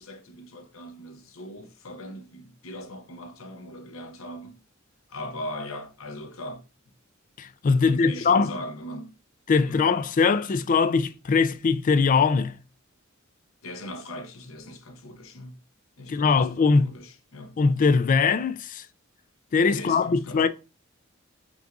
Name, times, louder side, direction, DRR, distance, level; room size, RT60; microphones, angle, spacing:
voice 1, 0.0-4.6 5.1-6.6 7.8-9.2 9.6-9.8 13.6-15.6 16.0-17.6 19.7-20.5, left 1 dB, 70° left, 0.8 m, -39 dB
voice 2, 7.4-8.5 9.5-12.6 16.1-16.9 17.6-18.9 19.5-20.5, left 4 dB, 40° left, 0.3 m, -21 dB
5.9 x 2.6 x 2.3 m
head